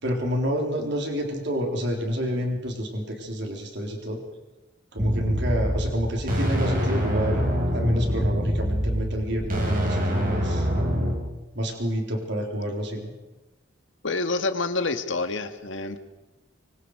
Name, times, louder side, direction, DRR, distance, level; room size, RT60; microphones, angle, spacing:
voice 1, 0.0-4.2 4.9-10.7 11.6-13.1, equal, 65° right, 2 dB, 4.0 m, -28 dB
sound 1, 5.0-11.2, equal, 45° right, 5.5 m, -25 dB
voice 2, 14.0-16.0, left 3 dB, 70° left, 8 dB, 1.9 m, -27 dB
25.5 x 24.0 x 4.9 m, 1.0 s
head